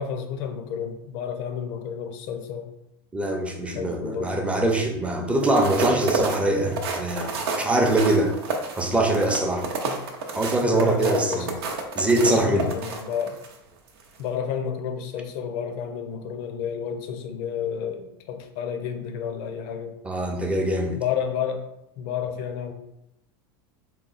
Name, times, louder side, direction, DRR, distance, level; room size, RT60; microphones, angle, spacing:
voice 1, 0.0-2.7 3.7-4.5 9.8-10.0 10.6-11.5 12.1-13.4 14.2-19.9 20.9-21.6 22.0-22.7, left 7 dB, 60° left, 7 dB, 0.6 m, -31 dB
voice 2, 3.1-8.3 8.8-9.7 10.4-11.5 11.9-12.6 20.0-21.0, right 2 dB, 10° right, 2 dB, 0.6 m, -23 dB
sound 1, 5.4-13.5 14.0-14.2, right 4 dB, 90° right, 0.7 m, -30 dB
3.8 x 2.2 x 4.1 m, 0.84 s
supercardioid pair, 125°, 13 cm